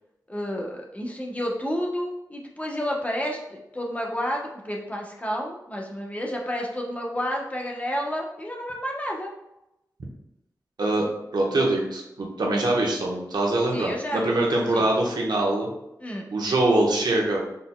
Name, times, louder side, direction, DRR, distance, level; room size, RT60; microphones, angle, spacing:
voice 1, 0.3-9.3 13.7-14.4 14.7-14.9 16.0-16.3, equal, 20° left, -1 dB, 1.0 m, -30 dB
voice 2, 11.3-15.7 16.3-17.4, right 2 dB, 70° right, -1 dB, 1.1 m, -23 dB
5.3 x 4.3 x 2.3 m, 0.86 s
cardioid pair, 65°, 7 cm